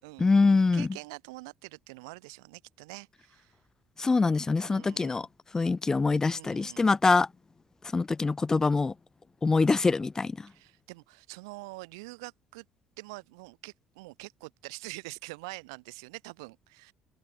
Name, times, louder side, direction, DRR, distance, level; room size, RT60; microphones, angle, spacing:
voice 1, 0.2-0.9 4.0-5.3 5.5-7.3 7.9-8.9 9.4-10.5, left 4 dB, 25° left, 2.2 m, -24 dB
voice 2, 0.7-3.5 4.6-5.3 6.3-6.9 10.5-12.7 13.0-16.9, right 26 dB, 70° right, 5.4 m, -45 dB
open air
figure-of-eight pair, 55°, 3 cm